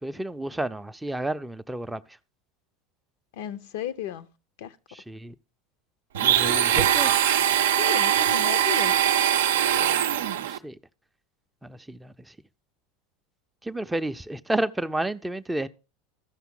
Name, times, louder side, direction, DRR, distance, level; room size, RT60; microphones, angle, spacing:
voice 1, 0.0-2.2 4.9-5.3 6.2-7.1 9.7-10.8 11.6-12.4 13.6-15.7, right 1 dB, 10° right, 0.4 m, -31 dB
voice 2, 3.3-4.3 4.6-4.8 7.6-8.9, left 11 dB, 60° left, 0.6 m, -34 dB
Domestic sounds home sounds, 6.1-10.6, right 10 dB, 70° right, 0.5 m, -22 dB
14.5 x 5.7 x 3.6 m
figure-of-eight pair, 80°, 0 cm